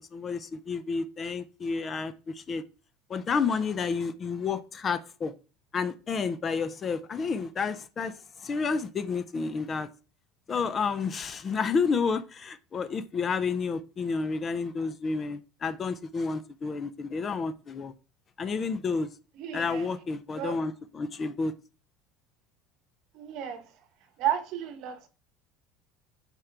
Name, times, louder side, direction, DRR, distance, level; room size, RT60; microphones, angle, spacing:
voice 1, 0.1-2.6 3.1-5.3 5.7-9.9 10.5-17.9 18.4-19.1 19.5-21.5, left 5 dB, 25° left, 0.5 m, -30 dB
voice 2, 19.3-19.9 20.3-20.6 23.1-23.7 24.2-25.1, right 10 dB, 55° right, 1.1 m, -32 dB
7.5 x 4.5 x 3.4 m
cardioid pair, 145°, 0 cm